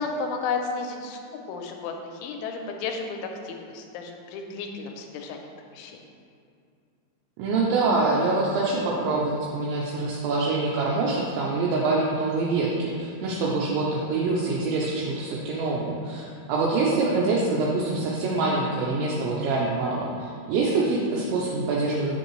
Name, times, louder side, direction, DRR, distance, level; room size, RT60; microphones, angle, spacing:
voice 1, 0.0-3.2 3.4-6.0, left 4 dB, 85° left, 3 dB, 3.0 m, -33 dB
voice 2, 7.4-22.2, right 3 dB, 80° right, -4 dB, 2.9 m, -25 dB
8.0 x 6.5 x 3.1 m, 2.4 s
omnidirectional pair, 5.5 m